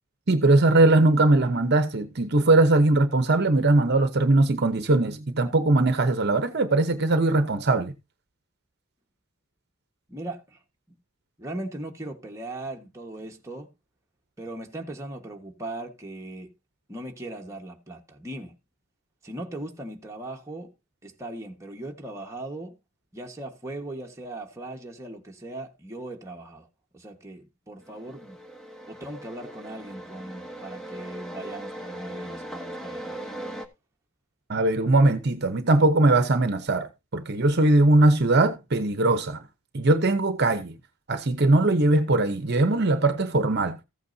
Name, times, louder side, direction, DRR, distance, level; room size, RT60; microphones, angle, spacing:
voice 1, 0.3-7.9 34.5-39.4 39.7-40.7 41.1-43.8, right 2 dB, 50° right, 0.9 m, -20 dB
voice 2, 10.1-10.6 11.4-13.7 14.4-16.5 16.9-18.5 19.2-20.7 21.0-22.8 23.1-26.7 26.9-28.4 28.9-33.2, right 1 dB, 15° right, 1.4 m, -38 dB
sound 1, 27.8-33.7, right 1 dB, 5° left, 1.1 m, -39 dB
14.5 x 8.5 x 2.7 m
head